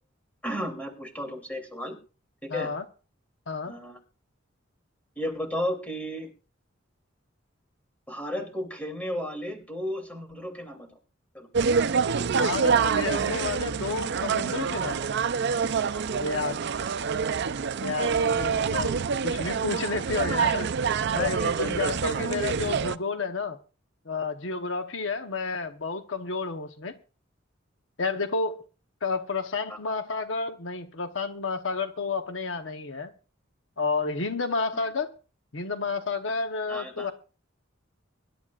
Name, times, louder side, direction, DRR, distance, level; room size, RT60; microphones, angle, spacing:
voice 1, 0.4-1.9 2.4-2.7 3.6-4.0 5.2-6.3 8.1-10.9 11.3-11.5 14.8-15.0 15.9-16.5 21.2-21.9 29.7-30.0 34.7-34.9 36.7-37.1, equal, 10° left, 3 dB, 2.9 m, -34 dB
voice 2, 2.5-2.8 3.5-3.7 12.4-15.0 16.2-16.6 17.8-19.0 19.2-20.7 21.1-23.6 24.0-27.0 28.0-28.6 29.0-33.1 33.8-35.1 35.5-37.1, left 4 dB, 70° left, 7 dB, 1.0 m, -30 dB
sound 1, 11.5-23.0, right 6 dB, 60° right, 0.5 m, -26 dB
24.5 x 11.5 x 2.4 m, 0.35 s
head